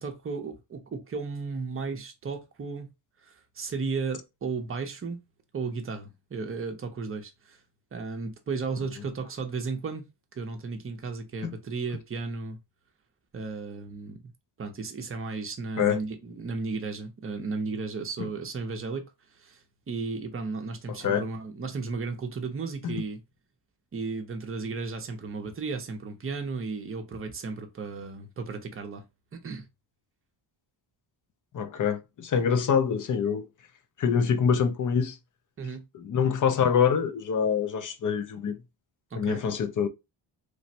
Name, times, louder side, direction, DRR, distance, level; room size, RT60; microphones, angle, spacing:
voice 1, 0.0-2.9 3.2-5.2 5.5-7.6 7.9-10.0 10.3-12.6 13.3-14.3 14.6-19.0 19.3-23.2 23.9-29.0 29.3-29.7 35.6-35.9 39.1-39.4, right 4 dB, 30° right, 0.5 m, -34 dB
voice 2, 20.9-21.2 22.8-22.9 31.5-33.5 34.0-35.2 35.9-38.5 39.1-39.9, left 7 dB, 40° left, 0.4 m, -25 dB
3.3 x 2.1 x 2.7 m
wide cardioid pair, 135°, 49 cm